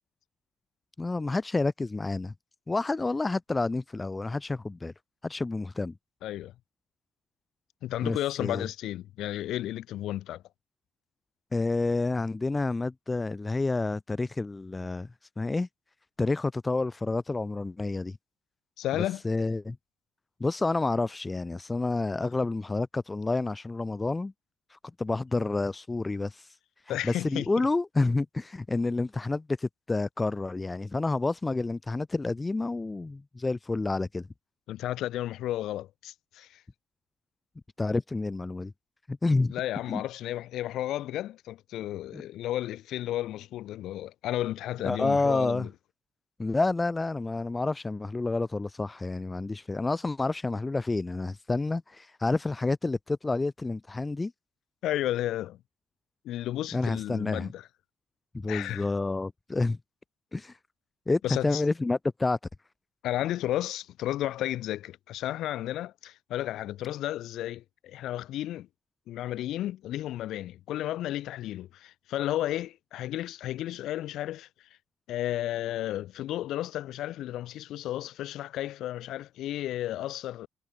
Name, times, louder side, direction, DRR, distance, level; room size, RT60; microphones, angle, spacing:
voice 1, 1.0-2.3 2.7-4.9 5.2-5.9 8.0-8.7 11.5-15.1 15.4-15.7 16.2-18.2 19.2-19.8 20.4-24.3 24.7-26.5 26.9-34.2 37.8-38.7 39.1-39.5 39.9-40.0 42.1-42.2 44.8-45.7 46.4-54.3 56.7-57.5 58.3-59.8 60.3-60.5 61.1-62.4, left 3 dB, 20° left, 0.6 m, -29 dB
voice 2, 6.2-6.5 7.8-10.4 18.8-19.2 26.9-27.5 34.7-36.6 39.5-45.7 54.8-55.6 56.2-57.7 58.5-58.9 61.2-61.6 63.0-68.7 69.1-74.5 75.1-80.5, left 13 dB, 85° left, 2.1 m, -33 dB
cardioid pair, 90°, 0 cm